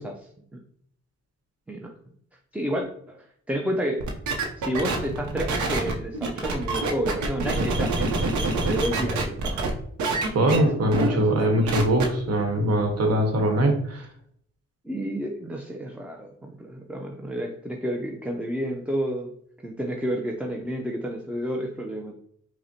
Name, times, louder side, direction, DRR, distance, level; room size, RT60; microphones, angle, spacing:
voice 1, 2.5-4.1 4.6-9.7 10.5-11.7 14.8-19.3 19.6-22.1, equal, 5° right, 2 dB, 0.5 m, -31 dB
sound 1, 4.0-9.7 10.0-10.6 10.9-11.1 11.4-12.0, right 3 dB, 80° right, 0.7 m, -26 dB
voice 2, 10.3-14.1, right 1 dB, 55° right, 2 dB, 1.1 m, -22 dB
4.8 x 2.1 x 2.8 m, 0.66 s
cardioid pair, 60°, 29 cm